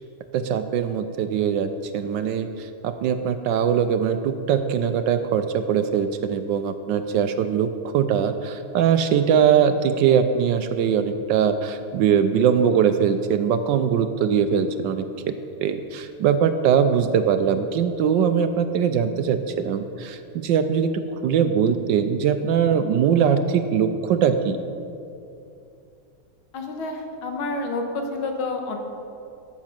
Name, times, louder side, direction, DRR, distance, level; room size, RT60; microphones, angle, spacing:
voice 1, 0.3-15.3 15.6-20.9 21.2-24.6, right 7 dB, 75° right, 9 dB, 1.2 m, -21 dB
voice 2, 26.5-28.8, left 3 dB, 85° left, 3 dB, 2.1 m, -29 dB
13.5 x 7.2 x 5.9 m, 2.6 s
omnidirectional pair, 2.2 m